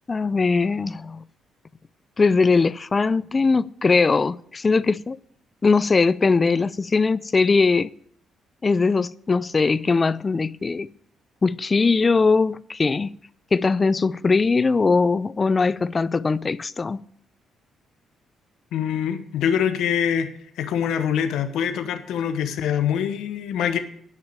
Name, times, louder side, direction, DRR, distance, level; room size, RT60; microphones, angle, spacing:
voice 1, 0.1-1.2 2.2-5.2 5.6-7.9 8.6-10.9 11.4-13.1 13.5-17.0, left 4 dB, 30° left, 0.4 m, -20 dB
voice 2, 18.7-20.3 20.6-23.8, left 8 dB, 80° left, 1.0 m, -24 dB
10.5 x 6.0 x 8.7 m
cardioid pair, 90°, 0 cm